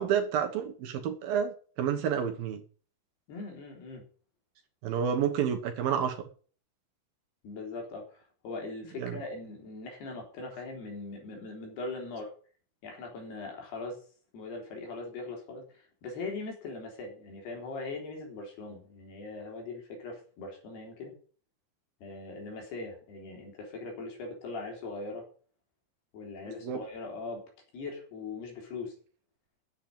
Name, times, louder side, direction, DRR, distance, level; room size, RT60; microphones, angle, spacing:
voice 1, 0.0-2.6 4.8-6.2 9.0-9.2 26.5-26.8, right 8 dB, 65° right, 5 dB, 2.8 m, -30 dB
voice 2, 3.3-4.0 7.4-12.3 12.8-14.0 14.3-21.1 22.0-25.2 26.1-27.4 27.7-28.9, left 3 dB, 70° left, 1 dB, 5.7 m, -40 dB
9.1 x 7.8 x 8.8 m, 0.42 s
omnidirectional pair, 4.8 m